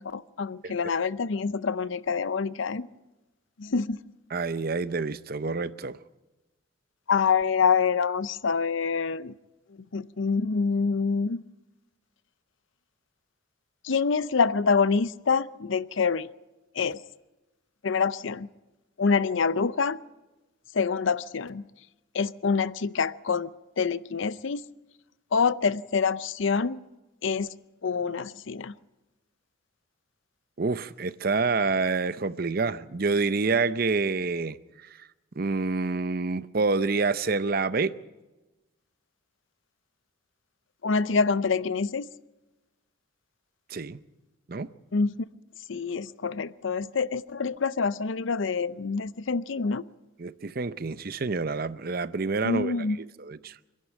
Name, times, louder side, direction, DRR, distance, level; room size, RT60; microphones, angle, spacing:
voice 1, 0.0-2.9 3.6-4.0 7.1-9.3 9.9-11.4 13.8-16.3 16.7-17.0 17.8-18.5 19.0-20.0 20.7-21.6 22.1-24.6 25.3-26.8 27.2-27.5 27.8-28.7 40.8-42.1 44.9-45.3 45.7-49.8 52.4-53.0, left 5 dB, 70° left, 0.6 m, -26 dB
voice 2, 4.3-6.0 30.6-34.6 35.4-38.0 43.7-44.0 44.5-44.7 50.2-52.7 53.2-53.6, right 4 dB, 45° right, 0.6 m, -27 dB
25.5 x 11.0 x 9.2 m
head